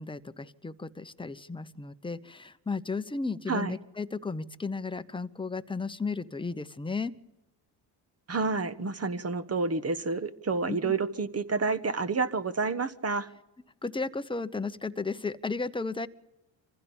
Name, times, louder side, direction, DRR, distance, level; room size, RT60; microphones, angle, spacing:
voice 1, 0.0-7.1 10.7-10.9 13.8-16.1, left 4 dB, 10° left, 11 dB, 1.0 m, -34 dB
voice 2, 8.3-13.3, right 4 dB, 30° right, 12 dB, 1.3 m, -29 dB
25.0 x 15.5 x 7.2 m, 0.96 s
cardioid pair, 80°, 47 cm